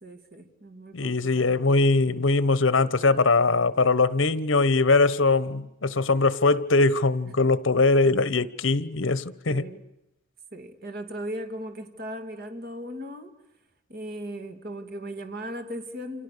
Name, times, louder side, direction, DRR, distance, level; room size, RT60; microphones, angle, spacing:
voice 1, 0.0-1.5 9.5-9.8 10.5-13.3 13.9-16.2, equal, 50° right, 2.6 m, -37 dB
voice 2, 0.9-9.7, left 3 dB, 70° left, 1.0 m, -21 dB
29.0 x 27.0 x 6.8 m
head